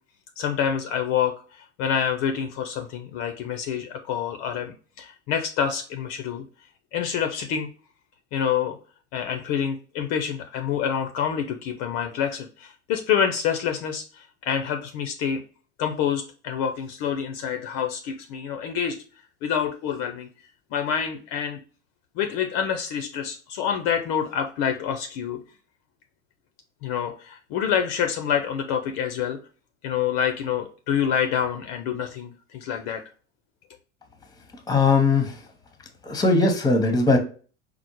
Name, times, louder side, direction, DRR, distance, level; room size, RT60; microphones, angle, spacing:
voice 1, 0.4-6.4 6.9-7.7 8.3-8.8 9.1-15.4 15.8-19.0 19.4-20.3 20.7-21.6 22.2-25.4 26.8-29.4 29.8-33.0, left 8 dB, 45° left, 5 dB, 0.5 m, -27 dB
voice 2, 34.7-35.4 36.0-37.2, left 3 dB, 10° left, 5 dB, 0.8 m, -19 dB
4.3 x 2.0 x 2.9 m, 0.39 s
hypercardioid pair, 85°, 35 cm